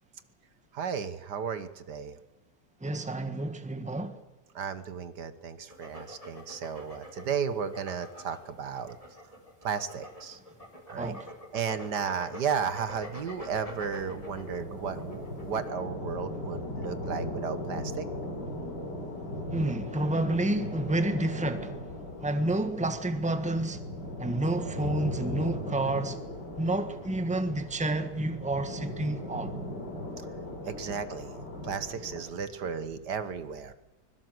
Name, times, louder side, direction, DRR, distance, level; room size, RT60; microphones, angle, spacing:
voice 1, 0.7-2.2 4.5-9.0 9.6-10.4 10.9-11.1 11.5-18.1 30.7-31.4 31.6-33.7, right 6 dB, 70° right, 1.9 m, -34 dB
voice 2, 2.8-4.2 10.9-11.3 19.5-21.8 22.2-23.8 24.2-26.2 26.6-29.5, right 2 dB, 5° right, 1.5 m, -29 dB
sound 1, 5.7-15.7, equal, 20° left, 4.6 m, -46 dB
sound 2, 12.6-32.2, left 1 dB, 75° left, 4.6 m, -38 dB
24.0 x 21.5 x 7.9 m
omnidirectional pair, 1.9 m